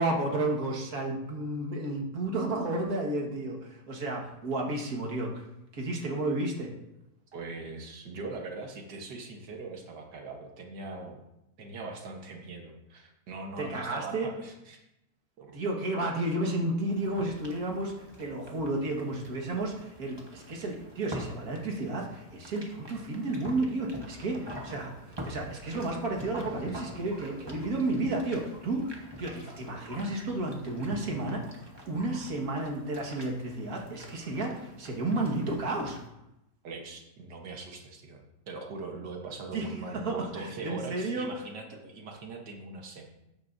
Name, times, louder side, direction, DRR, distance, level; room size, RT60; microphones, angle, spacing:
voice 1, 0.0-5.5 5.7-6.7 13.6-14.3 15.5-31.5 31.9-36.0 39.5-41.3, right 2 dB, 60° right, -1 dB, 2.1 m, -32 dB
voice 2, 7.3-11.2 11.6-14.8 15.4-15.6 36.6-43.0, right 3 dB, 75° right, 2 dB, 1.9 m, -41 dB
sound 1, 16.9-36.1, equal, 15° right, 1.2 m, -46 dB
13.5 x 9.5 x 2.7 m, 0.89 s
omnidirectional pair, 1.9 m